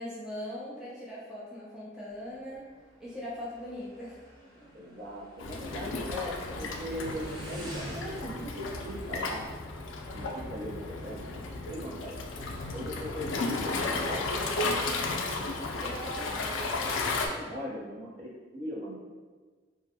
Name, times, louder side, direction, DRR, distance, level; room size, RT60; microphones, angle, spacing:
voice 1, 0.0-2.7 3.0-4.2 4.6-5.0 15.7-16.7, equal, 5° right, -8 dB, 0.4 m, -40 dB
Motorcycle, 2.1-10.4, equal, 25° right, 1.1 m, -48 dB
voice 2, 4.7-9.5 10.1-11.3 11.7-12.2 12.7-14.2 17.2-19.0, equal, 55° right, -6 dB, 0.8 m, -39 dB
Waves surf, 5.4-17.3, left 3 dB, 80° left, 0.3 m, -34 dB
2.5 x 2.2 x 2.7 m, 1.4 s
head